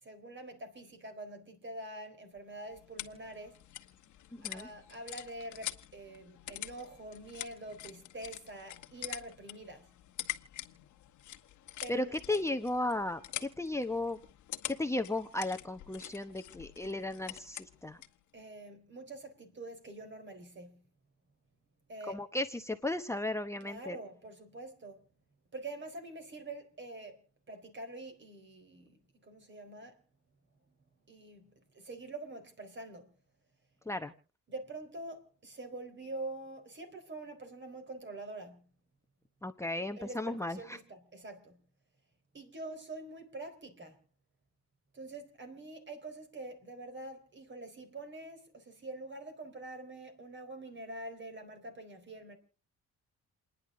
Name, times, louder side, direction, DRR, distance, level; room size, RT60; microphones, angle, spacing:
voice 1, 0.0-3.6 4.4-9.9 11.8-12.4 18.3-20.8 21.9-22.2 23.6-25.0 25.5-27.2 27.5-30.0 30.7-30.8 31.1-33.1 34.5-38.7 40.0-41.6 42.3-44.0 44.9-52.4, right 2 dB, 40° right, 4.0 m, -45 dB
sound 1, 2.4-18.2, left 13 dB, 75° left, 1.2 m, -46 dB
voice 2, 4.3-4.7 11.9-14.2 14.7-18.0 22.1-24.0 33.9-34.1 39.4-40.8, left 2 dB, 10° left, 0.9 m, -35 dB
29.0 x 10.5 x 3.7 m
cardioid pair, 90°, 30 cm